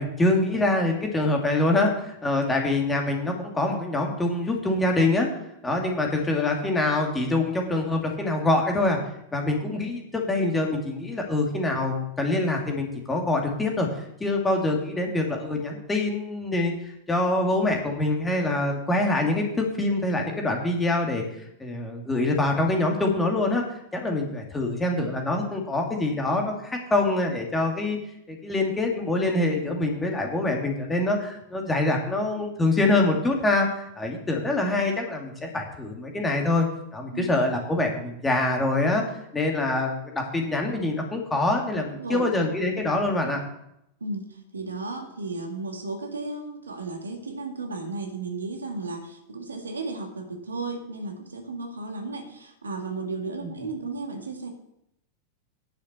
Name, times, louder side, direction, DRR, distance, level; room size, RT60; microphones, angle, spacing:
voice 1, 0.0-5.3 5.6-9.0 9.3-28.0 28.3-36.7 36.9-39.0 39.3-43.4 53.4-53.5, left 2 dB, 10° left, 1 dB, 2.5 m, -25 dB
voice 2, 44.0-54.5, right 3 dB, 75° right, 4 dB, 1.8 m, -34 dB
10.5 x 6.5 x 6.8 m, 0.79 s
figure-of-eight pair, 90°, 0 cm